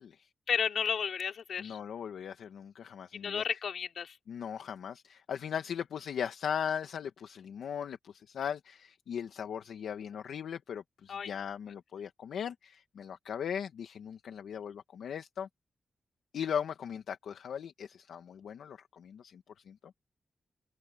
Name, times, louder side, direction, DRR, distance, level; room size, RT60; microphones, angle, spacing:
voice 1, 0.5-1.8 3.1-4.2 11.1-11.3, left 7 dB, 75° left, 3.4 m, -33 dB
voice 2, 1.6-3.4 4.3-15.5 16.3-19.9, left 8 dB, 90° left, 1.4 m, -38 dB
cardioid pair, 90°, 0 cm